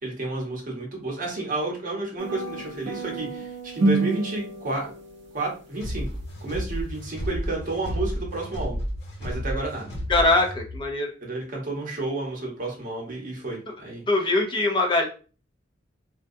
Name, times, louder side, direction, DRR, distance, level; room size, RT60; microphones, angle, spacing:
voice 1, 0.0-4.9 5.3-6.1 6.4-8.8 9.2-9.9 11.2-14.0, right 2 dB, 45° right, -1 dB, 0.9 m, -31 dB
sound 1, 2.2-5.6, right 2 dB, 65° right, 0.6 m, -28 dB
sound 2, 5.8-10.8, equal, 60° left, 1.0 m, -32 dB
voice 2, 10.1-11.1 14.1-15.1, left 2 dB, 25° left, 1 dB, 0.5 m, -22 dB
2.4 x 2.2 x 2.6 m, 0.37 s
head